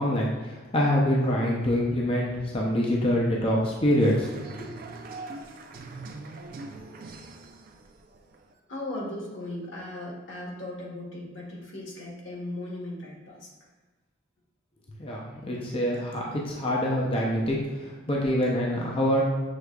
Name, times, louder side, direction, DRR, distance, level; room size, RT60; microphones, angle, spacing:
voice 1, 0.0-4.3 4.6-4.7 15.0-19.2, equal, 30° left, -3 dB, 0.5 m, -25 dB
sound 1, 4.0-8.5, right 3 dB, 50° right, 0.4 m, -42 dB
voice 2, 8.7-13.5, left 1 dB, 80° left, -2 dB, 1.2 m, -37 dB
6.4 x 3.4 x 2.3 m, 1.3 s
head